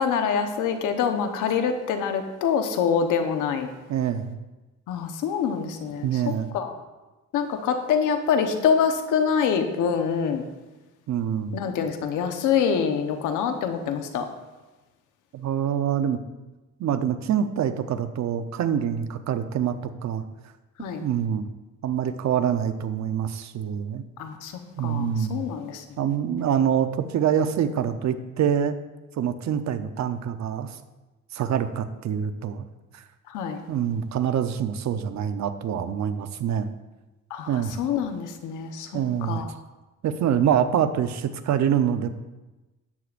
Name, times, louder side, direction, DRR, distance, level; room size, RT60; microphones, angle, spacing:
voice 1, 0.0-3.7 4.9-6.7 7.3-10.5 11.5-14.3 20.8-21.0 24.2-25.8 33.3-33.6 37.3-39.5, left 7 dB, 90° left, 6 dB, 1.1 m, -25 dB
voice 2, 3.9-4.4 6.0-6.5 11.1-11.6 15.3-16.2 16.8-20.2 21.0-21.5 21.8-24.0 24.8-25.4 26.0-28.8 29.2-30.8 31.3-32.6 32.9-33.0 33.7-36.7 37.5-37.7 38.9-39.4 40.0-42.1, right 8 dB, 65° right, 9 dB, 0.8 m, -25 dB
13.0 x 9.6 x 2.6 m, 1.1 s
cardioid pair, 90°, 30 cm